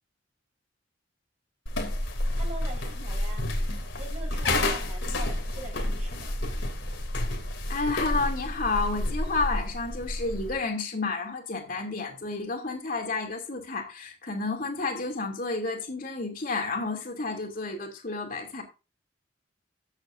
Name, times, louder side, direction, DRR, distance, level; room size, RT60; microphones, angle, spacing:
sound 1, 1.7-10.6, left 1 dB, 80° left, 2.7 m, -30 dB
voice 1, 2.4-3.5 4.0-6.4, right 2 dB, 35° right, 4.2 m, -43 dB
voice 2, 7.7-18.6, left 3 dB, 45° left, 2.7 m, -31 dB
14.5 x 7.9 x 2.6 m
head